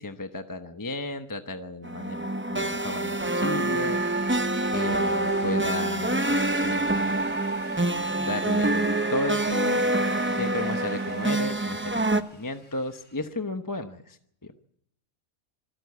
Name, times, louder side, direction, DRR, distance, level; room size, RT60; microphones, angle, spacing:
voice 1, 0.0-4.3 4.7-7.0 8.2-9.9 10.3-14.2, left 2 dB, 15° left, 7 dB, 0.8 m, -34 dB
sound 1, 1.8-12.2, right 2 dB, 15° right, 0.5 m, -26 dB
Drill, 3.6-13.2, left 2 dB, 60° left, 3.7 m, -49 dB
26.0 x 14.5 x 8.4 m, 0.72 s
omnidirectional pair, 1.5 m